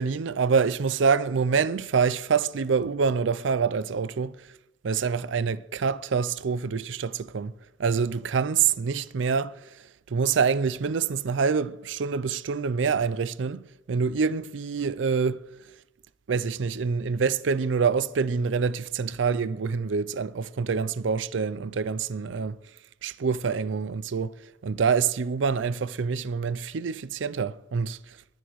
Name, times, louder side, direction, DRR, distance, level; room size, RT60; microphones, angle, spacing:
voice 1, 0.0-4.4 4.8-7.5 7.8-9.6 10.1-15.4 16.3-22.6 23.0-24.3 24.6-28.0, right 5 dB, 80° right, 0.5 m, -26 dB
19.5 x 10.0 x 3.1 m
head